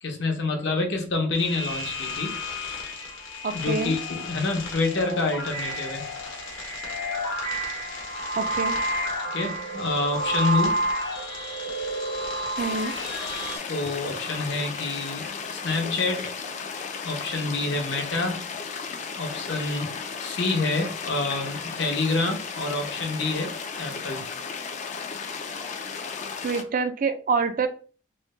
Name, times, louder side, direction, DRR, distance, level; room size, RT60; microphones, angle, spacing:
voice 1, 0.0-2.8 3.5-6.0 9.3-10.9 13.7-16.3 17.0-18.5 19.2-19.9 20.2-24.2, left 3 dB, 60° left, 3 dB, 0.7 m, -28 dB
sound 1, 1.3-13.6, equal, 80° left, 1.0 m, -30 dB
voice 2, 3.4-4.0 8.4-8.8 12.6-13.0 26.4-27.7, right 4 dB, 40° right, 9 dB, 0.3 m, -26 dB
sound 2, 12.6-26.6, left 5 dB, 35° left, 0.3 m, -35 dB
3.1 x 2.1 x 3.1 m, 0.40 s
head